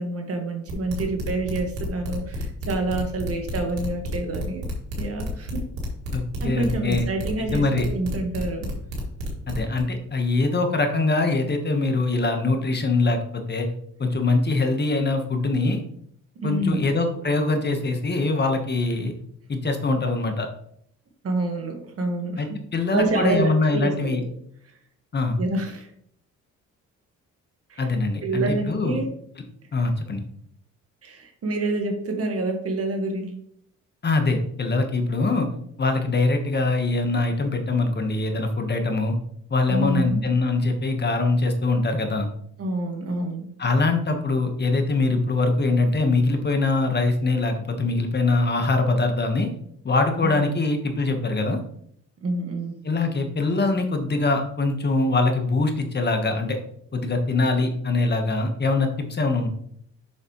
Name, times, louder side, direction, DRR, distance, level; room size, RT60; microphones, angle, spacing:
voice 1, 0.0-4.7 5.0-5.6 6.4-7.6 7.9-8.7 16.3-16.8 21.2-22.6 22.9-24.2 25.4-25.9 27.7-27.8 28.2-29.1 31.0-33.4 39.7-40.2 42.6-43.4 50.2-50.4 52.2-52.8, right 2 dB, 50° right, 4 dB, 1.7 m, -27 dB
sound 1, 0.7-9.8, equal, 90° right, 2.3 m, -31 dB
voice 2, 6.1-7.1 7.5-7.8 9.5-13.7 14.0-15.8 16.4-19.1 19.5-20.5 22.4-22.5 22.7-24.2 25.1-25.4 27.8-29.0 29.7-30.2 34.0-35.5 35.8-39.1 39.5-42.3 43.6-49.5 49.8-51.6 52.8-56.6 56.9-59.5, left 3 dB, 35° left, 5 dB, 1.3 m, -23 dB
7.1 x 6.4 x 3.1 m, 0.68 s
cardioid pair, 90°, 30 cm